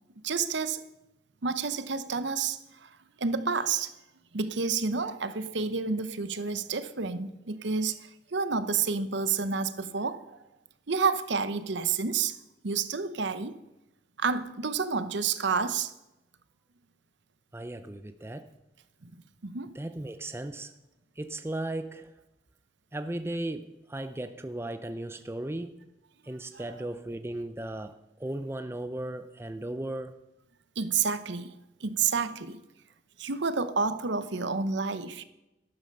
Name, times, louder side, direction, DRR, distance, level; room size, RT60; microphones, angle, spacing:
voice 1, 0.2-0.8 1.4-2.9 3.2-3.9 4.3-10.4 10.9-12.4 12.6-13.6 14.2-15.9 19.4-19.7 26.5-26.6 30.8-31.5 31.8-32.6 33.2-35.2, right 5 dB, 65° right, 0.8 m, -29 dB
voice 2, 17.5-18.5 19.7-20.8 21.2-22.1 22.9-25.8 26.2-30.2, right 1 dB, 10° right, 0.5 m, -36 dB
13.0 x 12.0 x 5.4 m
head